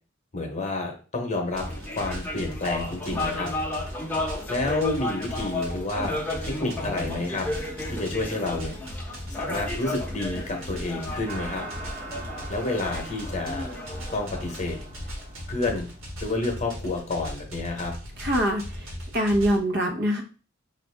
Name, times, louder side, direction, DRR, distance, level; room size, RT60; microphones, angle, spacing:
voice 1, 0.3-3.5 4.5-6.1 6.4-7.5 7.9-8.7 9.3-11.6 12.5-13.7 14.1-14.8 15.5-15.9 16.2-17.9, left 2 dB, 35° left, 2 dB, 1.0 m, -29 dB
sound 1, 1.5-15.2, left 2 dB, 10° left, 0.8 m, -34 dB
sound 2, 1.5-19.6, equal, 85° right, 1.4 m, -38 dB
sound 3, 11.2-16.5, right 3 dB, 40° right, 1.5 m, -43 dB
voice 2, 18.2-20.2, equal, 55° right, 2 dB, 0.9 m, -24 dB
5.2 x 2.5 x 3.4 m, 0.37 s
head